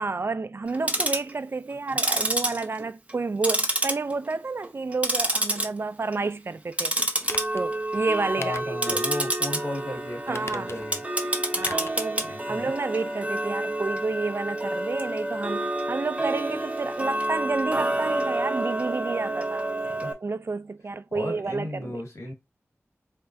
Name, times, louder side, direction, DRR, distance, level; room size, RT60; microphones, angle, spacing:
voice 1, 0.0-7.0 7.5-9.0 10.3-10.8 11.2-19.7 20.2-22.0, right 3 dB, 50° right, 0.4 m, -30 dB
Tick-tock, 0.7-1.3 1.9-3.2 3.4-4.3 4.6-5.7 6.0-6.3 6.7-20.1, right 1 dB, 25° right, 1.1 m, -28 dB
sound 1, 7.2-7.6 8.4-9.1 9.4-9.5 10.3-11.0 11.6-12.0 12.3-12.4, left 3 dB, 55° left, 0.5 m, -39 dB
voice 2, 8.4-11.0 12.2-12.7 20.0-20.1 21.1-22.3, left 1 dB, 75° left, 1.9 m, -35 dB
4.5 x 3.6 x 2.6 m
wide cardioid pair, 60°, 5 cm